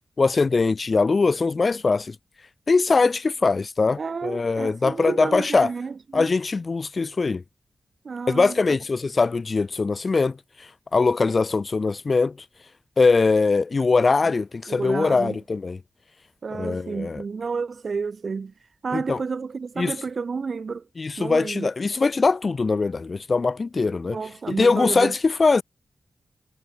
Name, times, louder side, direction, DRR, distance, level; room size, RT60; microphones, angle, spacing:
voice 1, 0.2-2.2 2.7-5.7 6.1-7.4 8.3-10.4 10.9-12.4 13.0-15.8 16.5-17.2 18.9-19.2 19.8-19.9 21.0-24.2 24.5-25.6, left 4 dB, 40° left, 2.2 m, -21 dB
voice 2, 4.0-6.3 8.0-8.6 14.7-15.4 16.4-18.5 18.8-20.8 21.2-21.7 24.1-25.1, right 5 dB, 55° right, 3.7 m, -30 dB
wide cardioid pair, 135°, 0 cm